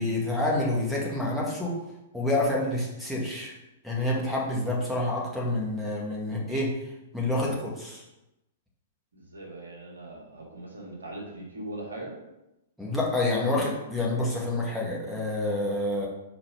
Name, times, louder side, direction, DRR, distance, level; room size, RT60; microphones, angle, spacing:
voice 1, 0.0-1.8 2.1-3.5 3.8-6.8 7.1-8.0 12.8-16.1, left 1 dB, ahead, -6 dB, 1.8 m, -28 dB
voice 2, 9.1-12.2, right 1 dB, 75° right, -2 dB, 1.9 m, -40 dB
4.7 x 4.1 x 5.8 m, 0.92 s
figure-of-eight pair, 105°, 0 cm